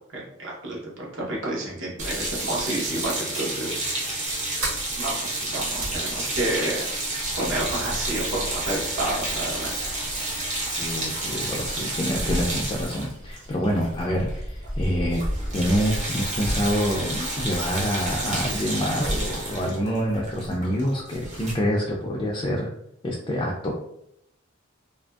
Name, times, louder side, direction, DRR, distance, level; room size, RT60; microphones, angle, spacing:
voice 1, 0.1-4.4 4.9-6.9 7.4-9.8, right 1 dB, 65° right, -3 dB, 0.9 m, -30 dB
sound 1, 2.0-14.4 14.6-14.8 15.1-21.5, right 2 dB, 35° right, 0.7 m, -31 dB
Sliding door, 4.3-20.6, equal, 80° right, 1.3 m, -35 dB
voice 2, 10.7-15.2 15.5-22.7 23.0-23.8, equal, 25° left, -3 dB, 0.3 m, -26 dB
2.7 x 2.5 x 2.2 m, 0.76 s
head